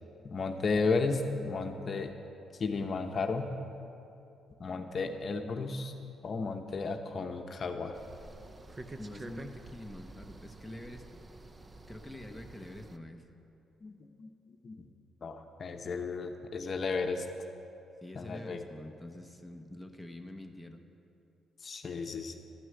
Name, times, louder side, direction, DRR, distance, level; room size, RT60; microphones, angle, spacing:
voice 1, 0.2-2.2 2.6-3.5 4.6-5.9 6.2-8.0 13.8-13.9 14.2-14.9 15.2-17.2 18.2-18.6 21.6-22.4, left 4 dB, 45° left, 5 dB, 0.8 m, -33 dB
sound 1, 7.9-13.0, right 2 dB, 25° right, 0.7 m, -48 dB
voice 2, 9.0-11.0 11.9-13.2 18.0-20.8, left 1 dB, ahead, 3 dB, 0.9 m, -46 dB
12.5 x 6.2 x 9.6 m, 2.7 s
cardioid pair, 90°, 0 cm